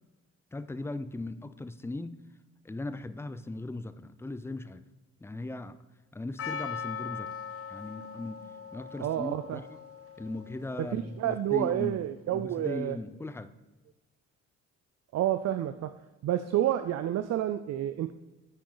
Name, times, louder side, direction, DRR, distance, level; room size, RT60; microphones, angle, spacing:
voice 1, 0.5-2.2 2.6-4.8 5.2-5.8 6.1-7.3 7.7-8.4 8.7-9.8 10.2-12.0 12.3-13.5, left 2 dB, 10° left, 0.5 m, -38 dB
Percussion, 6.4-11.3, left 7 dB, 50° left, 0.7 m, -41 dB
voice 2, 9.0-9.6 10.9-13.0 15.1-16.0 16.2-18.1, right 12 dB, 60° right, 0.5 m, -29 dB
9.7 x 8.7 x 3.9 m
cardioid pair, 90°, 30 cm